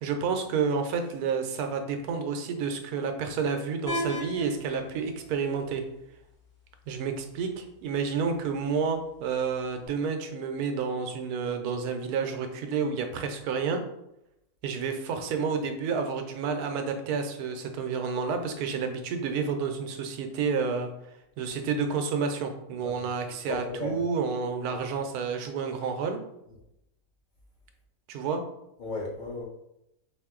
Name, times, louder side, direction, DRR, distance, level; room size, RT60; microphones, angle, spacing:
voice 1, 0.0-5.8 6.9-13.8 14.6-20.9 21.4-26.2 28.1-28.4, right 5 dB, 85° right, 5 dB, 1.1 m, -30 dB
sound 1, 3.9-9.9, equal, 50° left, 1.4 m, -41 dB
voice 2, 23.5-24.0 24.9-25.0 28.8-29.4, left 2 dB, 65° left, -1 dB, 0.4 m, -35 dB
3.5 x 2.6 x 3.6 m, 0.85 s
omnidirectional pair, 1.6 m